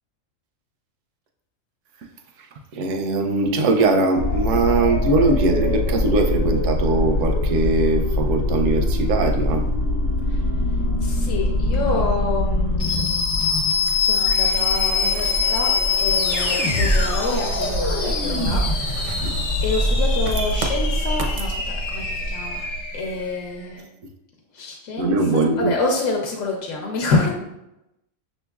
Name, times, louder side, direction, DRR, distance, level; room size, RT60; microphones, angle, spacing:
voice 1, 2.7-9.7 19.2-19.4 25.0-25.7, right 3 dB, 85° right, 4 dB, 1.0 m, -21 dB
sound 1, 4.2-23.5, left 2 dB, 50° left, 1.0 m, -22 dB
voice 2, 11.0-13.1 13.9-15.7 16.0-19.2 19.6-23.9 24.5-27.3, left 3 dB, 75° left, 0 dB, 1.0 m, -27 dB
sound 2, 15.0-21.5, right 2 dB, 55° right, 0.5 m, -30 dB
6.3 x 3.0 x 2.3 m, 0.88 s
omnidirectional pair, 1.3 m